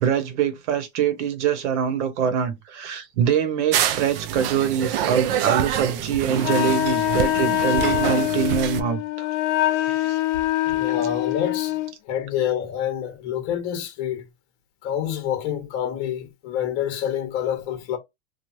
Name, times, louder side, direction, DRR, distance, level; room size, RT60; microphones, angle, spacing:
voice 1, 0.0-9.3 9.7-10.2, right 8 dB, 85° right, 0.9 m, -24 dB
sound 1, 3.7-8.8, right 10 dB, 55° right, 0.4 m, -26 dB
Wind instrument woodwind instrument, 6.4-11.9, left 15 dB, 80° left, 0.7 m, -24 dB
voice 2, 10.6-14.3 14.8-18.0, left 10 dB, 35° left, 0.9 m, -27 dB
3.1 x 2.3 x 2.6 m
supercardioid pair, 170°, 34 cm